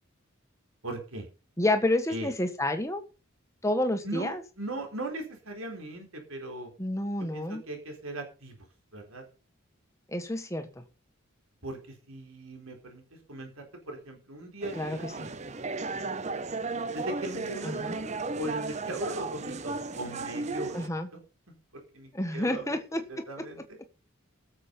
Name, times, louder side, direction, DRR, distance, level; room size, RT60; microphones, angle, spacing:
voice 1, 0.8-1.3 2.1-2.3 4.0-6.7 7.3-8.5 8.9-9.2 11.6-13.0 13.3-13.5 13.9-15.4 16.9-20.7 21.1-21.2 21.9-23.8, right 1 dB, 75° right, 3 dB, 4.3 m, -39 dB
voice 2, 1.6-3.0 3.6-4.4 6.8-7.6 10.1-10.8 14.8-15.0 17.6-18.0 20.7-21.1 22.1-23.2, left 1 dB, 15° left, 7 dB, 1.5 m, -29 dB
sound 1, 14.6-20.9, right 3 dB, 30° right, 0.7 m, -35 dB
17.5 x 7.5 x 5.4 m, 0.33 s
head